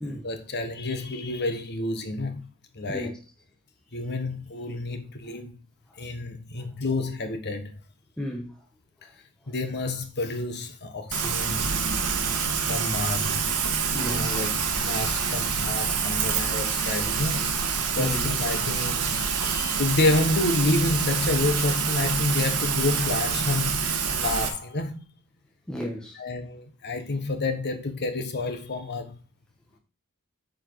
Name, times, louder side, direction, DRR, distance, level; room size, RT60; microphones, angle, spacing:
voice 1, 0.1-2.4 2.7-3.1 3.9-5.6 6.0-7.7 9.5-11.7 12.7-13.4 14.0-17.5 18.0-25.0 26.1-29.2, left 2 dB, 50° left, 1.4 m, -29 dB
voice 2, 8.2-8.5 13.9-14.4 18.0-18.3 25.7-26.2, equal, 5° left, 1.2 m, -33 dB
Rain, 11.1-24.5, right 6 dB, 75° right, 1.6 m, -26 dB
9.2 x 4.8 x 4.7 m
head